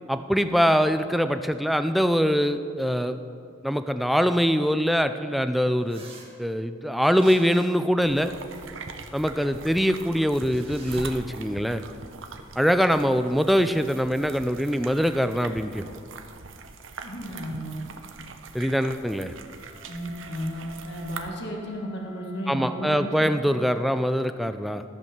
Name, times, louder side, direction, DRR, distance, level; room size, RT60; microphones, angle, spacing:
voice 1, 0.1-3.2 3.6-6.0 6.4-8.3 9.1-11.8 12.6-15.8 18.5-19.3 22.5-24.8, equal, ahead, 9 dB, 0.3 m, -23 dB
sound 1, 5.9-6.3 7.0-7.8 10.4-11.1, right 3 dB, 30° right, 1.5 m, -47 dB
sound 2, 8.0-21.3, right 4 dB, 80° right, 0.7 m, -42 dB
voice 2, 17.0-17.8 19.9-23.2, equal, 60° left, 0 dB, 1.6 m, -34 dB
Wind instrument woodwind instrument, 19.1-23.8, right 3 dB, 55° right, 1.8 m, -48 dB
14.0 x 5.4 x 6.6 m, 2.3 s
head